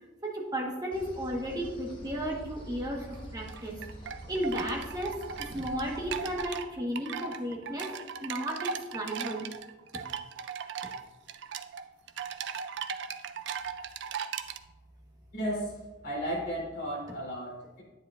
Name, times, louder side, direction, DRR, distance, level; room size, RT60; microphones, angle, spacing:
voice 1, 0.2-3.8 4.3-7.9 8.2-9.5 9.9-10.0, equal, 20° right, -2 dB, 1.3 m, -34 dB
sound 1, 0.9-6.4, equal, 25° left, 1.4 m, -46 dB
sound 2, 3.1-14.6, right 7 dB, 60° right, 0.4 m, -38 dB
voice 2, 15.3-15.8 16.0-17.8, equal, 45° left, -5 dB, 3.2 m, -34 dB
10.5 x 9.3 x 2.5 m, 1.2 s
head